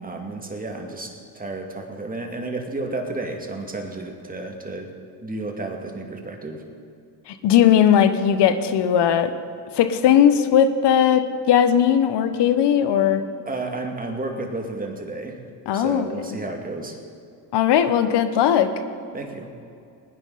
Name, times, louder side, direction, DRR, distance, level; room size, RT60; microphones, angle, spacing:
voice 1, 0.0-4.9 5.2-6.6 13.5-15.4 15.7-17.0 19.1-19.5, right 2 dB, 15° right, 2 dB, 2.3 m, -32 dB
voice 2, 7.3-9.3 9.7-13.2 15.7-16.1 17.5-18.7, left 9 dB, 55° left, 11 dB, 1.2 m, -18 dB
20.0 x 9.8 x 4.2 m, 2.5 s
supercardioid pair, 80°, 48 cm